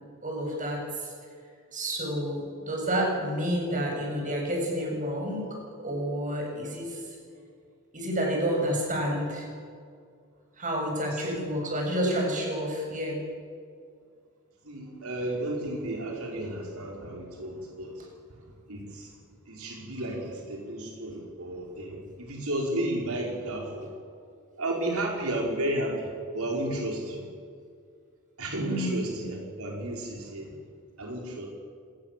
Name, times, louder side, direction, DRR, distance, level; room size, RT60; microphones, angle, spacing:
voice 1, 0.2-1.1 1.7-5.5 5.8-6.9 7.9-9.5 10.6-13.2 28.7-29.0, equal, 40° right, 0 dB, 7.5 m, -29 dB
voice 2, 14.6-18.1 18.7-19.2 19.4-23.9 24.6-27.3 28.4-30.5 31.0-31.5, right 1 dB, 85° right, -1 dB, 4.9 m, -33 dB
27.5 x 20.5 x 7.6 m, 2.2 s
head